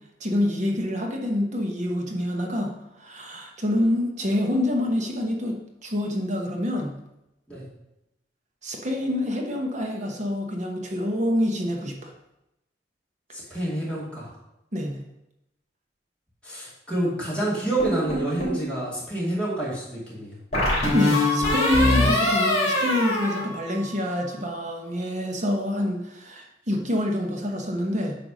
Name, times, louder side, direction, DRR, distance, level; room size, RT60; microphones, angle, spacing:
voice 1, 0.2-2.7 3.0-7.0 8.6-12.1 14.7-15.0 20.9-28.2, left 1 dB, 45° right, 2 dB, 1.0 m, -26 dB
voice 2, 13.3-14.3 16.4-20.4, right 1 dB, 5° left, -7 dB, 2.5 m, -28 dB
sound 1, 17.8-18.6 20.5-24.2, left 1 dB, 40° left, 3.0 m, -23 dB
8.9 x 3.5 x 6.2 m, 0.89 s
head